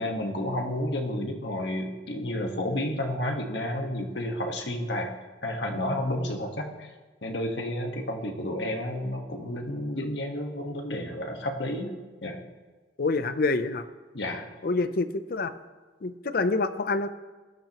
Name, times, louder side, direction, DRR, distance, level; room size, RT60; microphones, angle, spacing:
voice 1, 0.0-5.1 5.4-6.9 7.2-11.9 12.2-12.4 14.1-14.5, left 1 dB, 70° left, 3 dB, 1.4 m, -31 dB
voice 2, 13.0-13.9 14.6-15.5 16.0-17.1, left 3 dB, 55° left, 12 dB, 0.6 m, -27 dB
16.0 x 12.0 x 3.0 m, 1.3 s
head